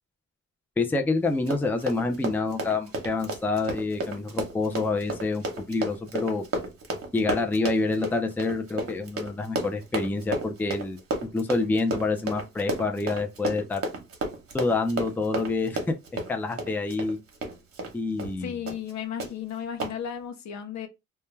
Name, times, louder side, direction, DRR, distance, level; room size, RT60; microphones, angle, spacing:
voice 1, 0.8-6.4 7.1-11.0 11.3-13.8 14.5-16.0 16.3-17.2 17.9-18.6, left 3 dB, 5° left, 0.4 m, -27 dB
Run, 1.3-17.9 18.2-18.4 18.7-18.9 19.2-19.3 19.8-19.9, right 2 dB, 50° right, 0.9 m, -32 dB
voice 2, 18.4-20.9, left 8 dB, 65° left, 0.6 m, -34 dB
2.2 x 2.1 x 3.1 m
cardioid pair, 90°, 30 cm